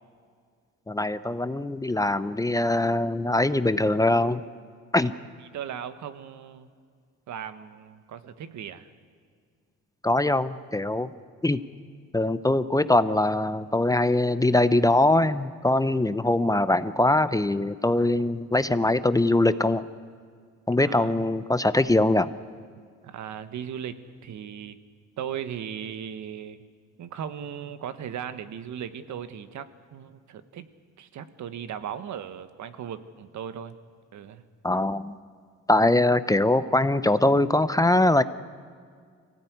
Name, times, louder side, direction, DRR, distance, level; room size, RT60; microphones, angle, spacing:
voice 1, 0.9-4.4 4.9-5.1 10.0-11.1 11.4-11.6 12.1-19.8 20.7-22.3 34.6-35.1 35.7-38.2, left 2 dB, 10° left, 13 dB, 0.7 m, -22 dB
voice 2, 5.0-6.7 7.3-8.9 20.8-21.2 23.0-24.0 24.2-24.8 25.2-26.6 27.0-30.7 31.0-33.8 34.1-34.4, right 9 dB, 70° right, 11 dB, 1.4 m, -37 dB
23.5 x 16.5 x 9.5 m, 2.1 s
cardioid pair, 90°, 30 cm